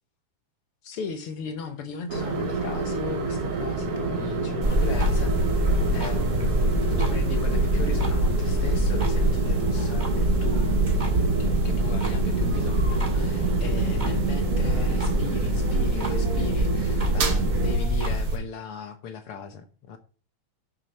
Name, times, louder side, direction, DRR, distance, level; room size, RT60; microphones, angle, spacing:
voice 1, 0.8-5.4 5.9-6.7 7.0-20.0, left 6 dB, 75° left, 8 dB, 1.2 m, -37 dB
sound 1, 2.1-17.7, right 4 dB, 50° right, 2.3 m, -28 dB
sound 2, 4.6-18.4, right 1 dB, 20° right, 1.4 m, -25 dB
12.0 x 6.8 x 4.3 m, 0.38 s
omnidirectional pair, 3.8 m